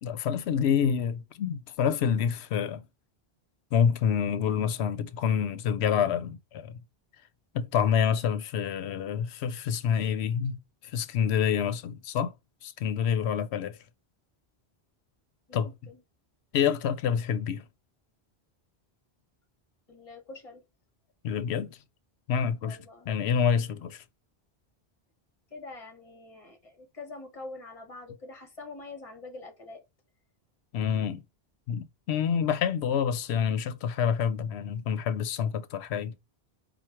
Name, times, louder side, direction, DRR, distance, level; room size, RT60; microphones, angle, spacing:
voice 1, 0.0-2.8 3.7-6.8 7.5-10.6 10.9-12.3 12.6-13.8 15.5-15.7 16.5-17.6 21.2-21.8 22.3-22.8 23.1-24.0 30.7-31.2 31.7-36.1, left 8 dB, 85° left, 0.8 m, -27 dB
voice 2, 15.5-16.0 19.9-20.6 22.6-23.1 25.5-29.8, left 3 dB, 35° left, 1.2 m, -45 dB
4.4 x 2.3 x 4.6 m
omnidirectional pair, 1.1 m